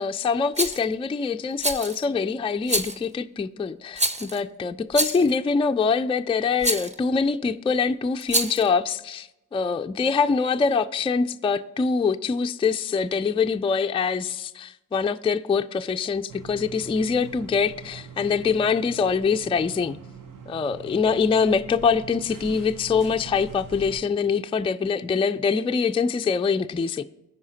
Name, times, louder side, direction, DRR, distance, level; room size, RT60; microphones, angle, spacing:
voice 1, 0.0-20.0 20.5-27.0, left 5 dB, 15° left, 0.3 m, -24 dB
Rattle, 0.5-0.8 1.6-2.0 2.7-3.0 4.0-4.4 4.9-5.3 6.6-6.9 8.2-8.7, right 1 dB, 20° right, 0.9 m, -26 dB
sound 1, 16.3-24.0, right 5 dB, 60° right, 1.0 m, -43 dB
14.5 x 4.9 x 2.8 m
supercardioid pair, 40°, 36 cm